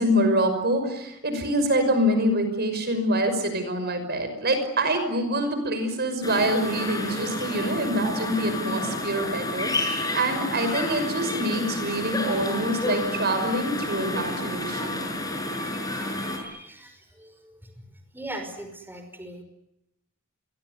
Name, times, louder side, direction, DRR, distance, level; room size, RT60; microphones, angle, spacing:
voice 1, 0.0-15.0, right 1 dB, 50° right, 8 dB, 5.8 m, -25 dB
sound 1, 6.2-16.4, left 2 dB, 20° left, 6.2 m, -30 dB
voice 2, 14.8-17.9 18.1-19.4, right 1 dB, 10° right, 5 dB, 5.4 m, -42 dB
28.5 x 23.0 x 8.3 m, 0.87 s
head